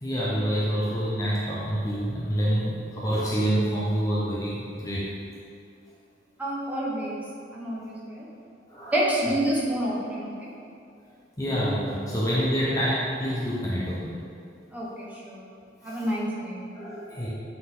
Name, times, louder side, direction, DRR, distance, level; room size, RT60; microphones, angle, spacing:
voice 1, 0.0-5.1 8.7-8.9 11.4-14.1 15.8-16.0 16.7-17.3, equal, 15° left, -7 dB, 0.8 m, -27 dB
voice 2, 6.4-7.2 7.5-8.3 8.9-10.5 12.1-12.2 14.7-15.5 15.8-16.6, right 1 dB, 10° right, -6 dB, 1.0 m, -28 dB
8.3 x 3.9 x 3.7 m, 2.5 s
head